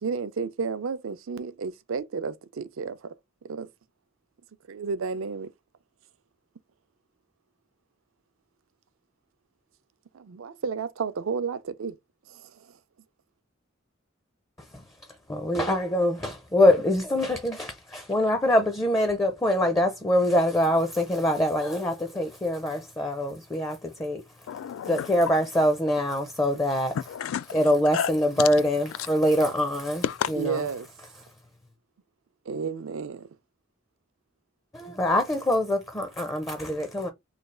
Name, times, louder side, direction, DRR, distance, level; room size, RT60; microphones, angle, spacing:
voice 1, 0.0-3.1 3.4-3.7 4.7-5.5 10.1-12.0 12.3-12.8 30.3-30.9 32.5-33.3, right 5 dB, 80° right, 0.5 m, -32 dB
voice 2, 15.3-24.2 24.8-27.0 27.5-30.6 34.7-37.1, left 1 dB, 15° left, 0.4 m, -24 dB
voice 3, 24.5-25.1 27.1-28.1 28.4-28.5 30.0-30.3, left 9 dB, 85° left, 0.3 m, -30 dB
3.2 x 2.3 x 3.7 m
head